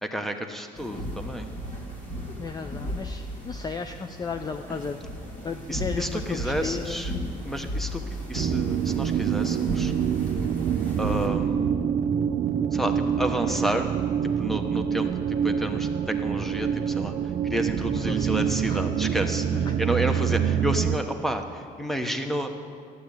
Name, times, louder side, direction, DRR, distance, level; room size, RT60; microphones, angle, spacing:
voice 1, 0.0-1.5 5.7-7.1 7.4-8.0 8.3-9.9 11.0-11.8 12.7-13.9 14.4-17.1 17.5-22.5, equal, ahead, 6 dB, 1.0 m, -30 dB
sound 1, 0.8-11.3, equal, 45° left, 3.1 m, -35 dB
voice 2, 2.4-5.0 5.4-7.1 17.9-18.9 19.5-20.3, left 5 dB, 25° left, 7 dB, 0.5 m, -35 dB
sound 2, 8.3-21.0, right 8 dB, 50° right, 0.6 m, -26 dB
12.0 x 8.2 x 9.1 m, 2.2 s
cardioid pair, 110°, 17 cm